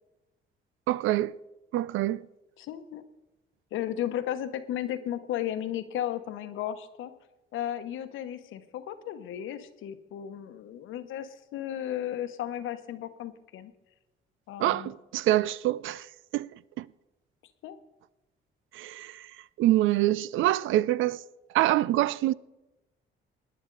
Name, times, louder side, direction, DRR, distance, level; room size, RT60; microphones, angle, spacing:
voice 1, 0.9-1.4 1.7-2.3 14.6-16.1 16.3-16.5 16.8-16.9 18.7-19.2 19.6-21.2 21.5-22.3, right 15 dB, 80° right, 0.4 m, -25 dB
voice 2, 2.6-3.0 3.7-7.1 7.5-13.7 14.5-14.9 17.6-17.8, left 11 dB, 85° left, 1.0 m, -34 dB
18.0 x 10.0 x 3.9 m
cardioid pair, 90°, 20 cm